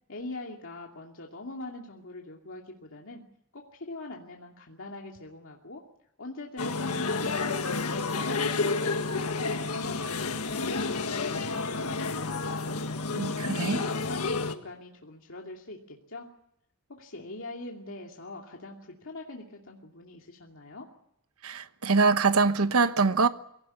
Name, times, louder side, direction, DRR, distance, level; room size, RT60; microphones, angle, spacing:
voice 1, 0.1-3.2 3.5-5.8 6.2-9.4 9.7-12.8 13.4-16.3 16.9-20.9, left 2 dB, 65° left, 2.6 m, -42 dB
sound 1, 6.6-14.5, left 3 dB, 90° left, 1.7 m, -30 dB
voice 2, 13.1-13.8 21.4-23.3, right 4 dB, 75° right, 1.1 m, -24 dB
23.0 x 17.5 x 9.8 m
head